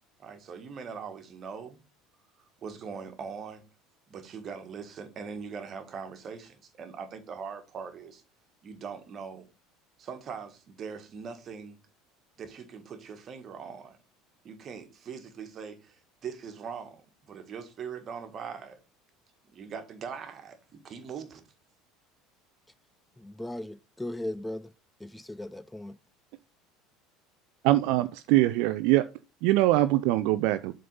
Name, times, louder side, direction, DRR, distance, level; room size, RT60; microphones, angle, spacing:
voice 1, 0.2-1.8 2.6-3.6 4.1-8.2 8.6-9.5 10.0-11.8 12.4-14.0 14.4-18.8 19.4-21.4, right 6 dB, 40° right, 1.6 m, -41 dB
voice 2, 23.2-24.7 25.0-26.0, left 1 dB, 10° left, 0.4 m, -37 dB
voice 3, 27.6-29.0 29.4-30.7, right 16 dB, 60° right, 0.4 m, -23 dB
7.5 x 3.9 x 5.4 m
hypercardioid pair, 70°, 0 cm